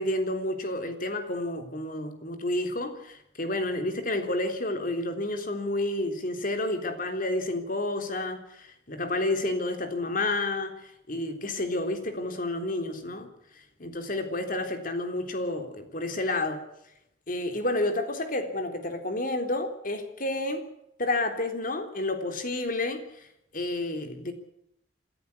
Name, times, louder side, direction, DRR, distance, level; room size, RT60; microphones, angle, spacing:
voice 1, 0.0-13.3 13.8-16.6 17.3-20.7 21.0-23.3 23.5-24.3, left 2 dB, 50° left, 7 dB, 3.6 m, -30 dB
26.5 x 14.5 x 8.4 m, 0.79 s
head